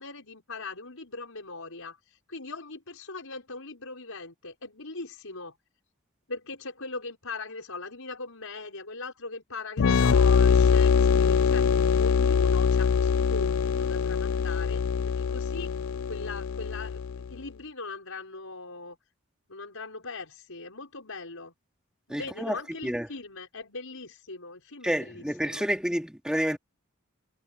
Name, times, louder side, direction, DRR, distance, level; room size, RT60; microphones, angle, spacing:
voice 1, 0.0-5.5 6.3-15.7 16.1-19.0 19.5-21.5 22.1-25.7, left 3 dB, 90° left, 5.3 m, -40 dB
sound 1, 9.8-17.3, left 6 dB, 70° left, 0.4 m, -23 dB
voice 2, 22.1-22.6 22.8-23.1 24.8-26.6, equal, 5° right, 3.0 m, -29 dB
head